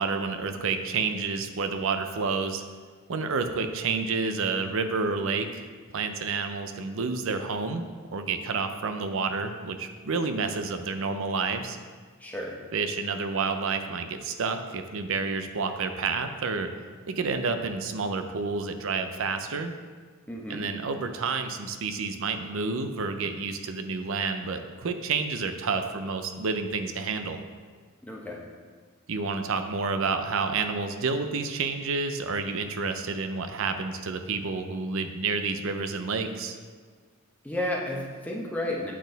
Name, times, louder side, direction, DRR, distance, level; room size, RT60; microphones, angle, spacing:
voice 1, 0.0-2.6 3.1-5.7 5.9-7.9 8.1-11.8 12.7-16.7 17.1-19.7 20.5-27.4 29.1-36.5, right 4 dB, 65° right, 8 dB, 0.6 m, -29 dB
voice 2, 12.2-12.6 20.3-20.6 28.0-28.4 37.4-38.9, left 1 dB, 5° left, -2 dB, 0.9 m, -32 dB
8.5 x 4.1 x 4.0 m, 1.5 s
head